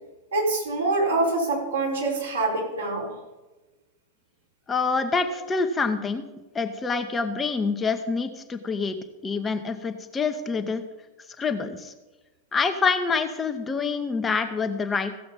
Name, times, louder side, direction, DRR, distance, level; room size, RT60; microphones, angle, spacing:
voice 1, 0.3-3.1, right 2 dB, 70° right, -4 dB, 4.4 m, -25 dB
voice 2, 4.7-6.2 6.5-9.0 9.2-10.8 11.4-11.9 12.5-15.2, left 4 dB, 20° left, 7 dB, 0.9 m, -26 dB
16.0 x 6.9 x 5.3 m, 1.1 s
figure-of-eight pair, 90°, 0 cm